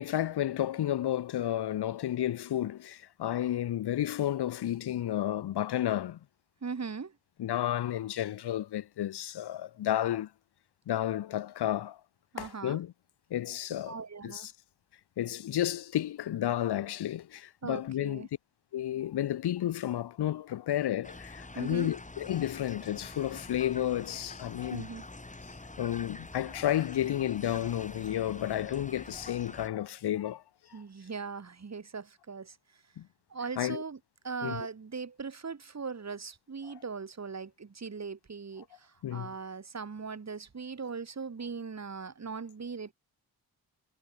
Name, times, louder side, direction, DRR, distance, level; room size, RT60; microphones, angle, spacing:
voice 1, 0.0-6.2 7.4-10.3 10.9-12.0 12.4-12.9 13.3-14.0 14.2-14.5 15.2-18.3 18.7-24.8 25.8-30.4 30.7-30.8 33.0-33.1 33.6-33.8 34.4-34.7 39.0-39.3, left 12 dB, 90° left, 1.2 m, -32 dB
voice 2, 6.6-7.2 12.3-12.8 13.8-14.5 17.6-18.3 21.5-21.9 24.7-25.0 30.7-32.8 33.3-34.0 34.2-42.9, right 5 dB, 45° right, 4.9 m, -39 dB
sound 1, 21.0-29.7, left 2 dB, 20° left, 4.9 m, -46 dB
cardioid pair, 85°, 38 cm